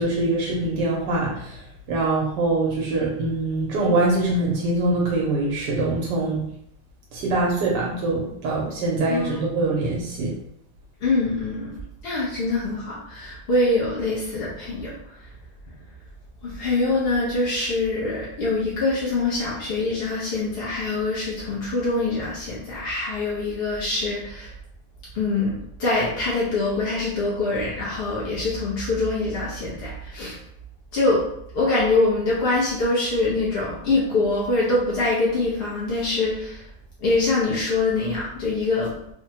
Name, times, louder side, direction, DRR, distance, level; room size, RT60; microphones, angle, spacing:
voice 1, 0.0-1.6 1.9-6.4 7.1-10.4, right 2 dB, 90° right, -3 dB, 1.3 m, -23 dB
voice 2, 11.0-14.9 16.4-24.5 25.1-30.4 30.9-31.2 31.5-36.6 37.0-38.9, left 2 dB, 60° left, -6 dB, 0.6 m, -24 dB
3.3 x 2.1 x 2.8 m, 0.71 s
omnidirectional pair, 1.8 m